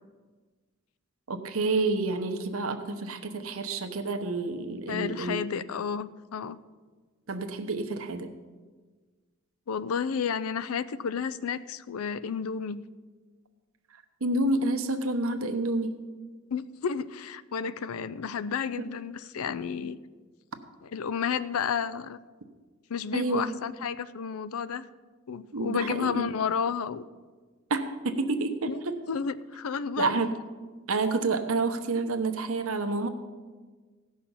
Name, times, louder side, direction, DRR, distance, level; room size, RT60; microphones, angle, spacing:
voice 1, 1.3-5.4 7.3-8.3 14.2-16.0 18.8-18.9 23.1-23.5 25.5-26.2 27.7-29.0 30.0-30.3 30.9-33.1, right 3 dB, 75° right, 7 dB, 0.9 m, -29 dB
voice 2, 4.9-6.6 9.7-12.8 16.5-20.0 20.8-22.2 22.9-24.8 25.3-27.0 28.6-30.2, left 6 dB, 85° left, 15 dB, 0.5 m, -31 dB
16.5 x 6.4 x 5.5 m, 1.4 s
head